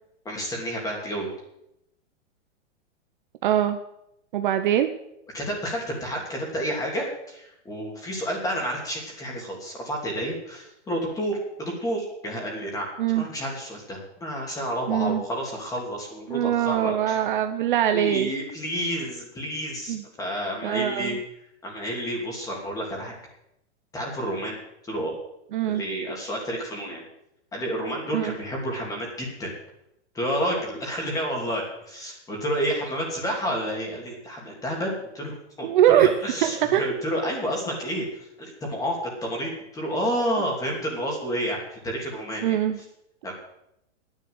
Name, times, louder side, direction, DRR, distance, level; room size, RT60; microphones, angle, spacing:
voice 1, 0.2-1.3 5.3-12.9 13.1-17.2 17.9-21.2 21.6-23.1 23.9-25.2 25.6-27.1 27.5-29.5 30.1-42.6 43.2-43.3, equal, 10° left, -1 dB, 2.9 m, -30 dB
voice 2, 3.4-3.8 4.3-4.9 13.0-13.3 14.9-15.2 16.3-18.3 19.9-20.0 20.6-21.2 25.5-25.8 28.1-28.3 35.6-36.1 36.4-36.9 42.4-42.8, right 11 dB, 45° right, 8 dB, 0.8 m, -22 dB
10.5 x 10.0 x 7.7 m, 0.81 s
hypercardioid pair, 165°, 35 cm